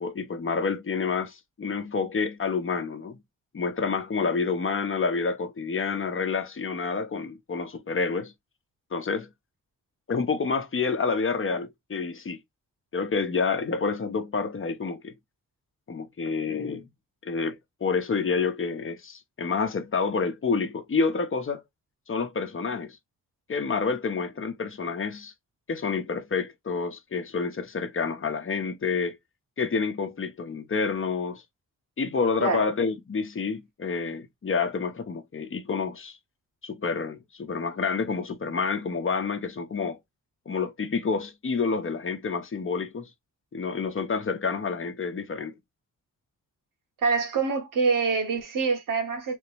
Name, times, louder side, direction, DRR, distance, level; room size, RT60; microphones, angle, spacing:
voice 1, 0.0-3.2 3.5-8.3 8.9-9.3 10.1-12.4 12.9-15.1 15.9-16.9 17.2-21.6 22.1-23.0 23.5-25.3 25.7-29.2 29.6-31.4 32.0-36.2 36.6-40.0 40.5-43.1 43.5-45.5, left 5 dB, 40° left, 0.9 m, -28 dB
voice 2, 47.0-49.4, right 4 dB, 80° right, 1.6 m, -25 dB
3.5 x 2.9 x 3.3 m
cardioid pair, 70°, 32 cm